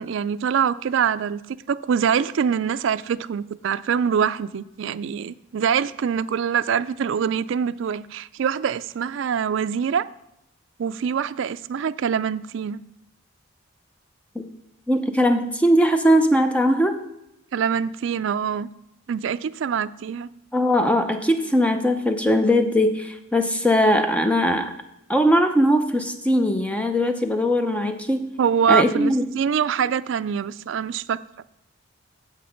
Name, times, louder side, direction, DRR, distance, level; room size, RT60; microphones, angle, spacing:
voice 1, 0.0-1.4 1.7-10.1 10.8-12.8 17.5-18.7 19.1-20.3 28.4-31.2, right 7 dB, 60° right, 0.3 m, -24 dB
voice 2, 14.9-17.0 20.5-24.7 25.1-28.3 28.7-29.3, equal, 5° left, 0.6 m, -20 dB
8.1 x 7.6 x 5.0 m
head